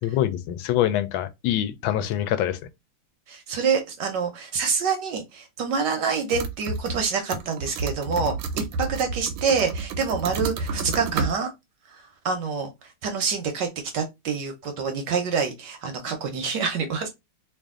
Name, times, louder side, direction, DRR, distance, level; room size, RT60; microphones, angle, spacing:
voice 1, 0.0-2.6, left 12 dB, 75° left, 1.2 m, -25 dB
voice 2, 3.3-11.5 11.9-12.7 13.0-13.7 13.9-17.1, right 5 dB, 65° right, 1.2 m, -26 dB
sound 1, 6.3-7.0 7.3-11.3, right 4 dB, 85° right, 1.5 m, -30 dB
3.3 x 2.5 x 3.6 m
omnidirectional pair, 2.4 m